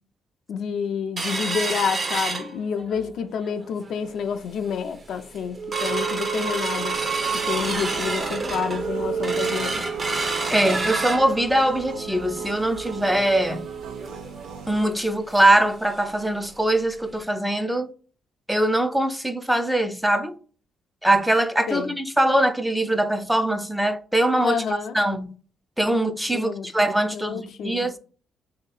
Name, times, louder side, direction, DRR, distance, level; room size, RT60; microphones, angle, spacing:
voice 1, 0.5-7.0 7.3-9.8 21.7-21.9 24.4-25.0 26.3-26.7 27.1-27.9, left 7 dB, 70° left, 0.4 m, -29 dB
sound 1, 1.2-3.0 3.4-3.5 3.9-4.2 4.7-4.8 5.1-15.7 16.0-16.1 16.5-16.6 17.2-17.3, right 4 dB, 35° right, 0.7 m, -28 dB
sound 2, 6.9-14.8, right 5 dB, 90° right, 0.5 m, -40 dB
voice 2, 10.5-13.7 14.7-17.9 18.5-20.3 21.0-25.3 25.8-27.9, right 1 dB, 5° right, 0.4 m, -22 dB
3.5 x 2.8 x 3.9 m
cardioid pair, 90°, 0 cm